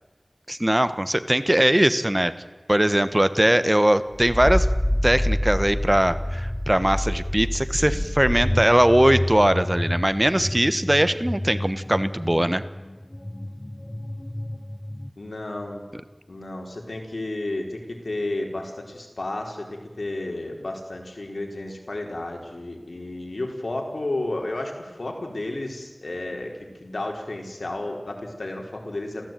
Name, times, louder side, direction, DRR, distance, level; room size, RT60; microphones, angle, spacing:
voice 1, 0.5-2.3 2.7-4.7 5.0-12.6, right 1 dB, 20° right, 13 dB, 1.3 m, -20 dB
sound 1, 4.1-15.1, left 1 dB, 25° left, 0.7 m, -28 dB
voice 2, 15.2-15.8 16.3-19.7 20.0-26.5 26.8-29.2, left 2 dB, 85° left, 2 dB, 4.4 m, -32 dB
26.5 x 16.0 x 9.3 m, 1.3 s
wide cardioid pair, 45°, 0 cm